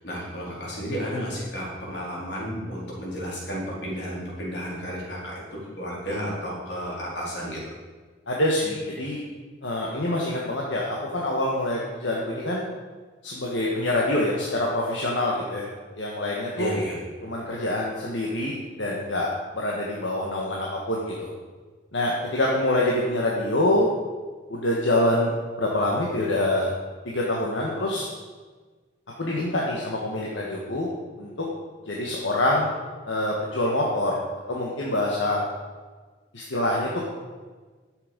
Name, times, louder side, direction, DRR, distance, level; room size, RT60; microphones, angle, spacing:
voice 1, 0.0-5.4 5.8-7.6 16.6-17.0, equal, 65° left, -5 dB, 4.1 m, -32 dB
voice 2, 8.3-9.2 9.6-12.6 13.2-15.7 15.9-16.7 17.2-19.3 19.5-21.3 21.9-23.9 24.5-25.3 25.6-26.7 27.0-28.1 29.2-30.9 31.2-31.4 31.9-32.7 33.1-34.2 34.5-35.4 36.3-37.1, left 1 dB, 85° left, -3 dB, 1.6 m, -25 dB
11.5 x 8.1 x 5.3 m, 1.4 s
head